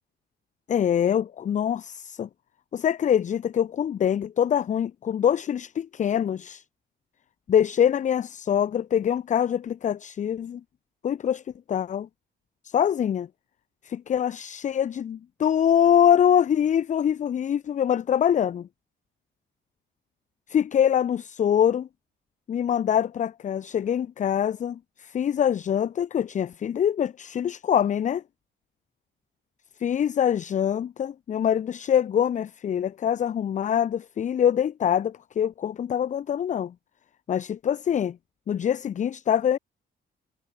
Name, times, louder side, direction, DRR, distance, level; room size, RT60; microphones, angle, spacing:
voice 1, 0.7-2.3 2.7-6.6 7.5-10.6 11.0-11.4 11.7-12.1 12.6-13.3 13.8-18.7 20.5-21.9 22.5-28.2 29.8-36.7 37.3-38.2 38.5-39.6, left 9 dB, 40° left, 0.4 m, -24 dB
cardioid pair, 90°, 20 cm